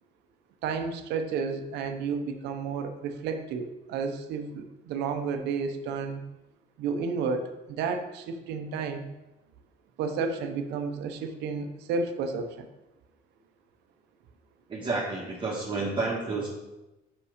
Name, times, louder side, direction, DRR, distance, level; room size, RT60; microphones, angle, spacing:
voice 1, 0.6-6.2 6.8-9.1 10.0-12.7, right 5 dB, 85° right, 6 dB, 0.8 m, -31 dB
voice 2, 14.7-16.5, right 3 dB, 30° right, -5 dB, 1.3 m, -30 dB
5.6 x 5.4 x 5.0 m, 0.99 s
cardioid pair, 110°, 17 cm